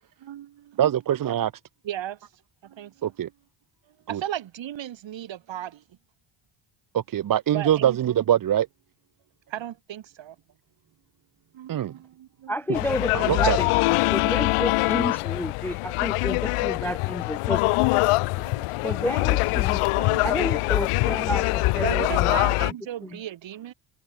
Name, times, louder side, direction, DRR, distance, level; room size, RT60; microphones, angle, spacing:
voice 1, 0.2-0.8 1.8-2.2 2.6-3.2 4.1-5.8 7.5-8.0 9.5-10.4 11.5-12.6 13.7-13.8 18.4-19.3 19.9-20.6 20.9-21.2 21.8-23.7, right 11 dB, 60° right, 4.2 m, -36 dB
voice 2, 0.8-1.5 3.0-3.3 4.1-4.2 6.9-8.7 11.7-11.9 13.1-13.6, right 10 dB, 40° right, 0.9 m, -23 dB
voice 3, 12.5-17.6 18.4-18.5 18.8-19.8 20.2-22.4 23.0-23.2, left 1 dB, 5° left, 0.4 m, -31 dB
sound 1, 12.7-22.7, left 23 dB, 90° left, 0.6 m, -23 dB
cardioid pair, 115°, 49 cm